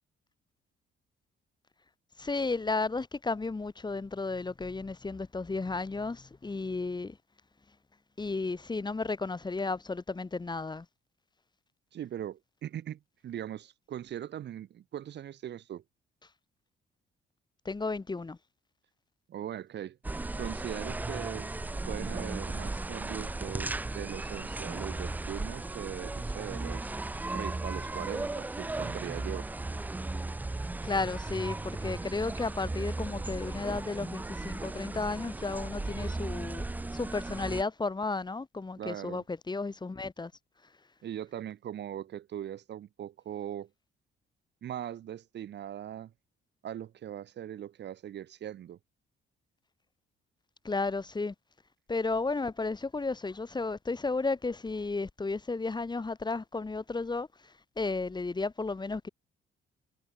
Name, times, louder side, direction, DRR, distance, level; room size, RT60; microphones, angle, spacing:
voice 1, 2.2-7.2 8.2-10.9 17.7-18.4 30.8-36.6 36.9-40.3 50.6-51.3 51.9-57.3 57.8-59.1, left 3 dB, 20° left, 1.8 m, -33 dB
voice 2, 11.9-15.8 19.3-20.0 20.4-21.5 21.9-26.9 27.3-29.5 38.8-39.2 41.0-43.7 44.6-46.1 46.6-48.8, right 10 dB, 60° right, 1.0 m, -40 dB
sound 1, 20.0-37.6, right 2 dB, 10° right, 0.3 m, -36 dB
cardioid pair, 90°, 20 cm